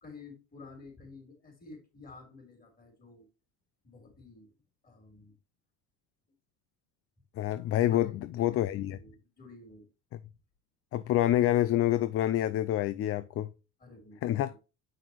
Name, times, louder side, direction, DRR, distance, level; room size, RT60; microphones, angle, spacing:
voice 1, 0.0-3.3 3.8-4.5 4.8-5.4 7.8-9.9 13.8-14.4, left 3 dB, 25° left, 3.6 m, -51 dB
voice 2, 7.4-9.0 10.1-10.2 10.9-13.5 14.2-14.5, left 13 dB, 40° left, 0.4 m, -27 dB
7.3 x 5.8 x 3.0 m
supercardioid pair, 105°, 37 cm